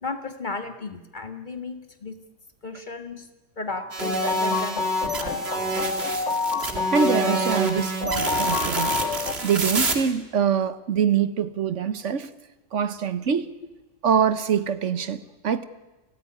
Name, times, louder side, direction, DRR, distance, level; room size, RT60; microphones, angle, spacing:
voice 1, 0.0-2.2 2.6-3.3 3.6-4.8 5.2-6.0, left 3 dB, 35° left, 8 dB, 1.8 m, -34 dB
sound 1, 3.7-9.3, left 4 dB, 60° left, 1.6 m, -28 dB
sound 2, 3.9-10.0, right 3 dB, 50° right, 2.5 m, -28 dB
voice 2, 6.9-9.0 9.4-12.3 12.7-13.5 14.0-15.6, right 7 dB, 65° right, 13 dB, 1.3 m, -24 dB
29.5 x 14.0 x 9.6 m, 1.1 s
omnidirectional pair, 1.3 m